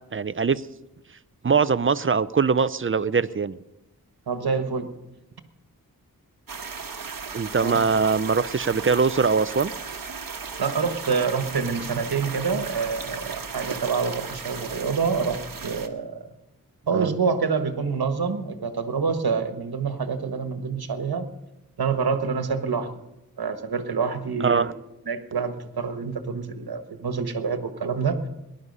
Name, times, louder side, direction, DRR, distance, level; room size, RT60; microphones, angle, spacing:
voice 1, 0.1-0.6 1.4-3.6 7.3-9.7 16.9-17.1 24.4-24.7, right 5 dB, 35° right, 16 dB, 0.5 m, -22 dB
voice 2, 4.3-4.9 7.6-7.8 10.6-16.3 16.9-21.3 21.8-22.9 23.4-24.7 25.1-28.2, right 5 dB, 80° right, 8 dB, 1.4 m, -27 dB
sound 1, 6.5-15.9, right 5 dB, 60° right, 1.4 m, -36 dB
19.0 x 11.5 x 5.5 m, 0.93 s
wide cardioid pair, 85°, 37 cm